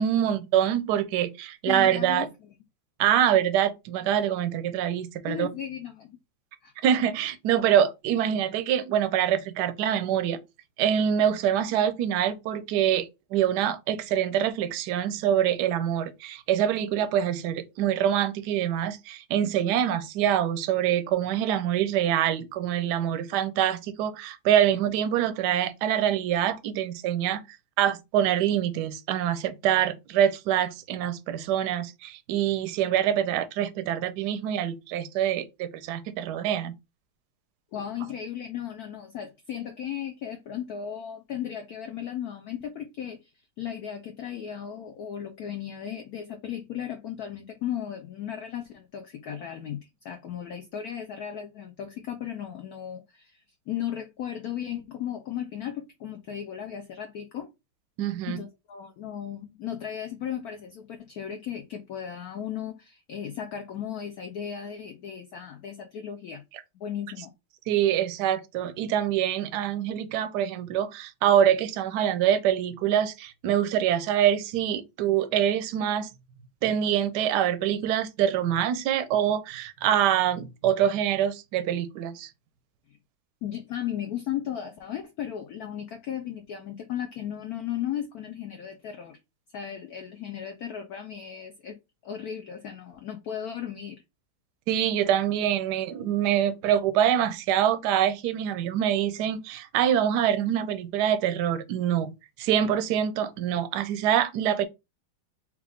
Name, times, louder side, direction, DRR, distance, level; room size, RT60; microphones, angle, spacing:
voice 1, 0.0-2.3 3.0-5.5 6.8-10.4 10.8-27.4 27.8-36.7 58.0-58.4 67.7-76.1 76.6-82.3 94.7-102.1 102.4-104.6, right 10 dB, 70° right, 1.0 m, -25 dB
voice 2, 1.7-2.3 5.3-6.2 6.6-6.7 37.7-43.3 43.6-57.5 58.3-66.4 66.7-67.3 83.4-89.2 89.5-91.8 92.0-94.0, left 9 dB, 90° left, 0.8 m, -35 dB
4.5 x 2.4 x 3.5 m
omnidirectional pair, 2.3 m